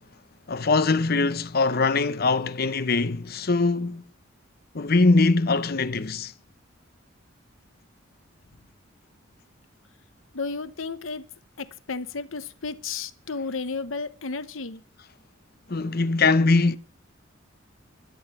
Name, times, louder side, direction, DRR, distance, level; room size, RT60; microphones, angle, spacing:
voice 1, 0.5-4.0 4.7-6.3 15.7-16.8, left 3 dB, 50° left, 0.8 m, -22 dB
voice 2, 10.3-11.2 11.6-14.8, left 4 dB, 80° left, 1.0 m, -33 dB
12.0 x 8.8 x 7.1 m
head